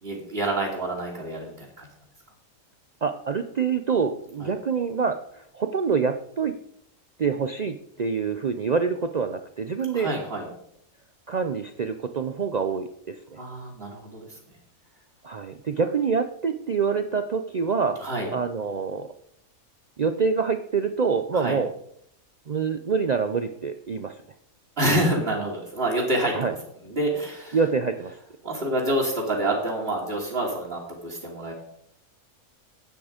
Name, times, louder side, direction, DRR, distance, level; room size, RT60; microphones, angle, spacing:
voice 1, 0.0-1.9 4.4-4.5 9.9-10.5 13.4-14.4 18.0-18.3 21.3-21.6 24.8-26.5 26.8-27.6 28.4-31.5, right 1 dB, 40° right, -2 dB, 2.4 m, -27 dB
voice 2, 3.0-6.5 7.2-10.1 11.3-13.4 15.2-19.1 20.0-21.7 22.5-24.2 26.3-26.5 27.5-28.2, right 5 dB, 75° right, 8 dB, 0.3 m, -26 dB
10.5 x 8.8 x 5.0 m, 0.71 s
omnidirectional pair, 1.5 m